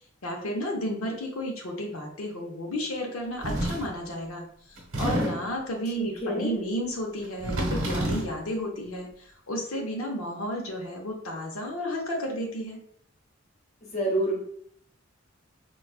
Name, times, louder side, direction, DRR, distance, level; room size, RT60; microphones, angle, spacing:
voice 1, 0.2-12.8, equal, 75° left, 0 dB, 0.6 m, -32 dB
sound 1, 3.4-4.0 4.8-5.6 7.2-8.4, right 1 dB, 80° right, 1.0 m, -29 dB
voice 2, 6.0-6.6 13.8-14.4, right 1 dB, 30° left, -2 dB, 0.8 m, -28 dB
4.5 x 2.2 x 2.4 m, 0.66 s
head